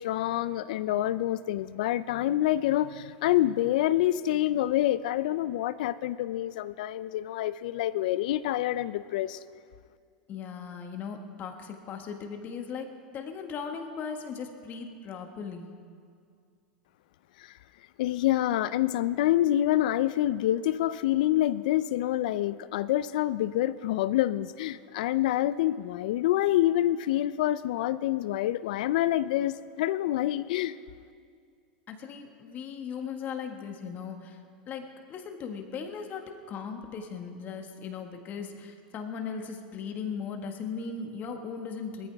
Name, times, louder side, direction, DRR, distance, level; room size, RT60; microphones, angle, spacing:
voice 1, 0.0-9.4 17.4-17.5 18.0-30.8, left 13 dB, 70° left, 16 dB, 0.4 m, -27 dB
voice 2, 10.3-15.7 31.9-34.4 34.7-34.8 35.1-42.1, left 6 dB, 40° left, 4 dB, 1.6 m, -38 dB
19.5 x 14.0 x 3.5 m, 2.3 s
hypercardioid pair, 105°, 5 cm